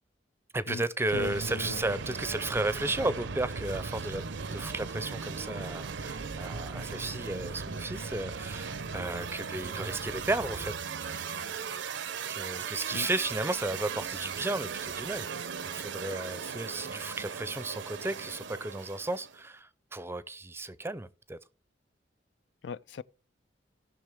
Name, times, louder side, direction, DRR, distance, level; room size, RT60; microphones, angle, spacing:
voice 1, 0.5-11.4 12.3-15.3 15.7-21.4, right 2 dB, 15° right, 0.5 m, -34 dB
voice 2, 1.1-1.8 12.9-13.1 22.6-23.0, left 6 dB, 70° left, 0.4 m, -38 dB
sound 1, 1.1-19.4, right 5 dB, 75° right, 0.7 m, -38 dB
16.5 x 6.2 x 3.5 m
head